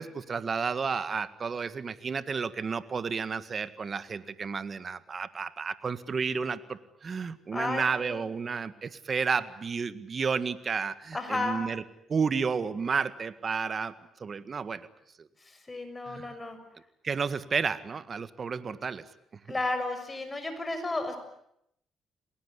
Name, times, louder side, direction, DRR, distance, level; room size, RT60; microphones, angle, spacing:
voice 1, 0.0-11.8 12.1-13.9 14.2-14.8 15.2-15.3 16.1-16.4 17.0-19.0, right 5 dB, 40° right, 13 dB, 1.8 m, -31 dB
voice 2, 7.5-8.3 11.1-11.6 15.4-16.6 19.5-21.2, left 2 dB, 20° left, 8 dB, 6.5 m, -33 dB
28.5 x 20.0 x 9.9 m, 0.77 s
cardioid pair, 90°, 0 cm